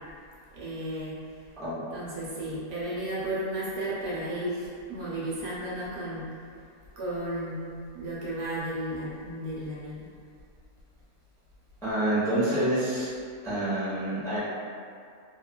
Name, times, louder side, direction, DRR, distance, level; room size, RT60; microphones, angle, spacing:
voice 1, 0.5-1.2 1.9-6.2 7.0-10.1, right 1 dB, 80° right, -7 dB, 1.2 m, -33 dB
voice 2, 1.6-1.9 11.8-13.1 13.4-14.4, right 1 dB, 5° left, -12 dB, 0.5 m, -27 dB
3.0 x 2.3 x 2.2 m, 2.3 s
omnidirectional pair, 1.5 m